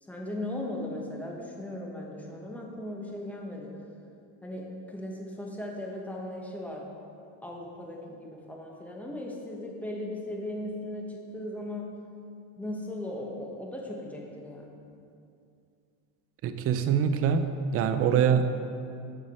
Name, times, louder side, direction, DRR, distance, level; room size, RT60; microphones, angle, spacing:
voice 1, 0.0-3.8 4.4-6.9 7.4-11.9 12.6-14.9, left 1 dB, 5° left, -1 dB, 1.1 m, -37 dB
voice 2, 16.4-17.5 17.7-18.4, right 8 dB, 30° right, 9 dB, 0.4 m, -24 dB
13.5 x 4.9 x 4.2 m, 2.5 s
cardioid pair, 135°, 49 cm